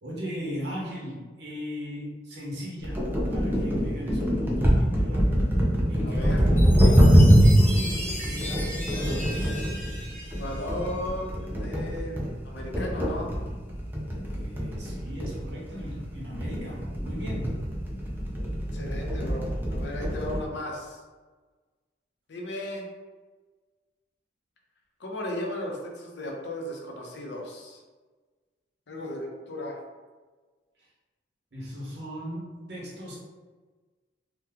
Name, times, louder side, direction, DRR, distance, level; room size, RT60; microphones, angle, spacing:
voice 1, 0.0-5.5 5.9-9.4 14.2-17.6 31.5-33.2, equal, 65° right, -5 dB, 1.0 m, -37 dB
sound 1, 2.8-20.4, equal, 10° right, 0.4 m, -24 dB
voice 2, 6.0-6.4 10.4-13.3 18.7-21.0 22.3-22.9 25.0-27.8 28.9-29.8, left 1 dB, 70° left, 0 dB, 0.6 m, -35 dB
Chime, 6.6-11.2, left 1 dB, 10° left, 0.8 m, -38 dB
2.8 x 2.2 x 3.5 m, 1.3 s
head